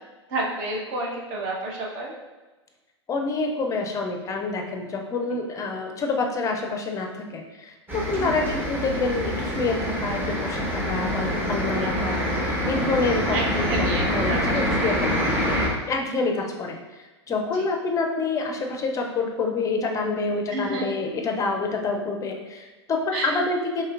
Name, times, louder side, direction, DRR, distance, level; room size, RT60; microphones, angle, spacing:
voice 1, 0.3-2.2 8.1-8.4 12.1-12.2 13.3-14.6 16.3-16.4 17.5-17.6 20.5-21.3 23.1-23.3, right 2 dB, 45° right, -2 dB, 1.1 m, -30 dB
voice 2, 3.1-7.1 7.3-15.3 15.9-23.8, left 3 dB, 20° left, 2 dB, 0.6 m, -27 dB
sound 1, 7.9-15.7, equal, 15° right, 1.0 m, -26 dB
4.2 x 3.2 x 2.5 m, 1.2 s
figure-of-eight pair, 95°, 15 cm